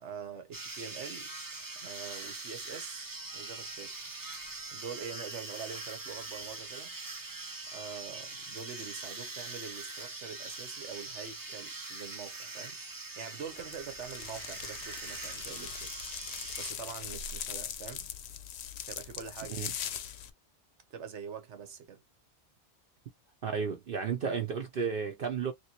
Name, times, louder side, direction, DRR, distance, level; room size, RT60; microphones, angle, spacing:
voice 1, 0.0-1.3 1.8-3.9 4.7-6.9 7.7-12.8 13.2-15.9 16.6-18.1 18.8-19.6 20.9-22.0, right 6 dB, 85° right, 1.2 m, -44 dB
sound 1, 0.5-16.7, right 3 dB, 25° right, 0.5 m, -42 dB
sound 2, 13.5-20.3, left 8 dB, 70° left, 0.8 m, -41 dB
voice 2, 23.4-25.5, right 6 dB, 55° right, 0.8 m, -33 dB
3.1 x 2.9 x 2.8 m
omnidirectional pair, 1.2 m